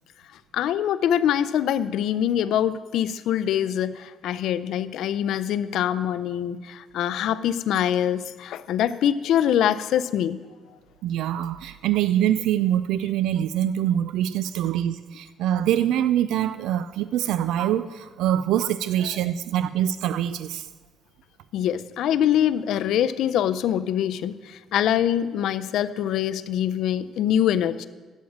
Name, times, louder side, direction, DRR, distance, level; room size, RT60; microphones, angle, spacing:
voice 1, 0.5-10.4 21.5-27.9, left 10 dB, 70° left, 0.4 m, -24 dB
voice 2, 11.0-20.7, right 11 dB, 85° right, 0.3 m, -24 dB
8.6 x 7.4 x 8.5 m
cardioid pair, 175°, 0 cm